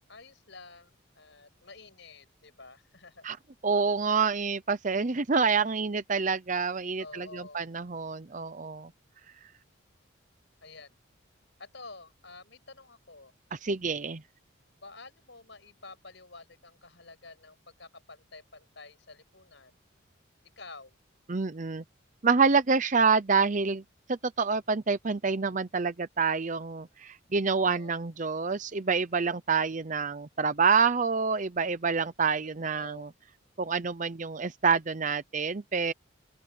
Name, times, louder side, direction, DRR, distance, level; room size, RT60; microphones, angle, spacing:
voice 1, 0.1-3.3 7.0-7.8 10.6-11.0 11.6-13.3 14.8-19.8 20.6-21.0 27.5-28.0 32.6-33.1, left 3 dB, 60° left, 7.9 m, -50 dB
voice 2, 3.6-8.9 13.6-14.2 21.3-21.8 22.2-23.8 24.1-33.1 33.6-35.9, right 5 dB, 40° right, 0.7 m, -27 dB
open air
head